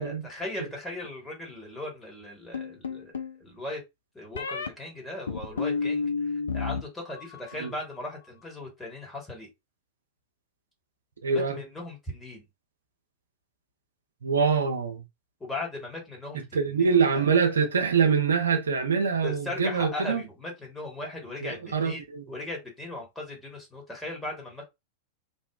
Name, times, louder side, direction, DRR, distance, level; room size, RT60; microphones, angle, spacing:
voice 1, 0.0-3.1 3.4-3.8 4.1-9.5 11.3-12.4 15.4-17.3 19.2-24.6, left 2 dB, 10° left, 1.2 m, -38 dB
sound 1, 2.5-3.4 4.4-4.7 5.3-6.8 7.1-7.7, left 5 dB, 70° left, 0.3 m, -31 dB
voice 2, 11.2-11.6 14.2-15.0 16.5-20.2 21.4-22.2, right 5 dB, 70° right, 0.4 m, -24 dB
2.6 x 2.0 x 2.3 m
figure-of-eight pair, 90°, 0 cm